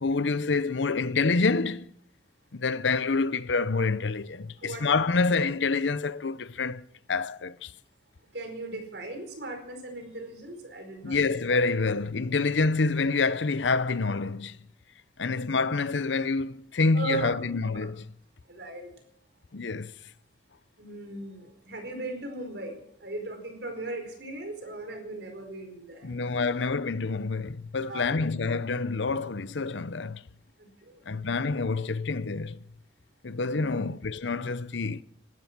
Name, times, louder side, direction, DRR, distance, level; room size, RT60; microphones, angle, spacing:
voice 1, 0.0-1.9 2.5-7.7 11.0-14.6 15.2-18.0 19.5-19.9 26.0-30.2 31.1-32.6 33.2-35.0, left 4 dB, 80° left, 0.7 m, -27 dB
voice 2, 4.6-4.9 8.3-11.4 16.9-17.4 17.7-17.9 18.5-18.9 20.8-26.5 27.7-28.1 30.6-31.2 33.5-33.8, right 2 dB, 65° right, 4.7 m, -38 dB
17.0 x 12.5 x 6.0 m
head